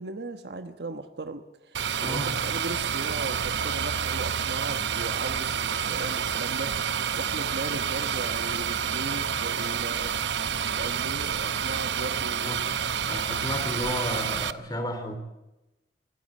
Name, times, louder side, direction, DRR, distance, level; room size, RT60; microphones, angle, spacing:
voice 1, 0.0-6.7 7.2-10.2 10.7-12.6, right 2 dB, 65° right, 8 dB, 1.2 m, -37 dB
sound 1, 1.7-14.5, right 7 dB, 85° right, 0.8 m, -29 dB
voice 2, 2.0-2.3 12.4-12.8 13.0-15.2, equal, 25° left, 8 dB, 3.3 m, -33 dB
25.5 x 14.5 x 8.6 m, 0.96 s
head